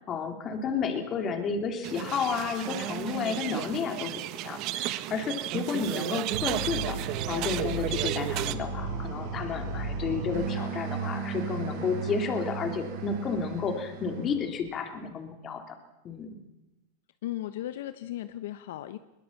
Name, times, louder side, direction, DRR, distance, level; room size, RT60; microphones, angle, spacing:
voice 1, 0.1-15.8 16.0-16.3, left 5 dB, 25° left, 5 dB, 2.8 m, -32 dB
sound 1, 1.8-8.5, right 15 dB, 40° right, 0.9 m, -33 dB
sound 2, 6.3-14.6, right 5 dB, 65° right, 7.3 m, -35 dB
voice 2, 17.2-19.0, left 13 dB, 75° left, 11 dB, 1.0 m, -36 dB
21.5 x 21.0 x 7.3 m, 1.0 s
supercardioid pair, 155°, 0 cm